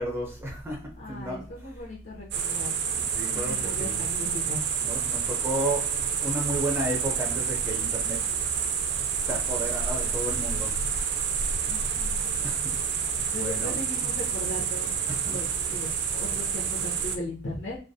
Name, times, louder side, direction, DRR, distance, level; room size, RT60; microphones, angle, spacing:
voice 1, 0.0-1.5 3.1-4.0 4.8-8.2 9.2-10.8 12.4-12.7 13.1-13.8 15.1-15.3, right 1 dB, 10° right, 0.6 m, -33 dB
voice 2, 1.0-2.9 3.2-4.6 11.7-12.5 13.1-17.8, left 1 dB, 70° left, 0.8 m, -38 dB
sound 1, 2.3-17.2, right 7 dB, 60° right, 0.3 m, -28 dB
2.3 x 2.1 x 2.6 m
head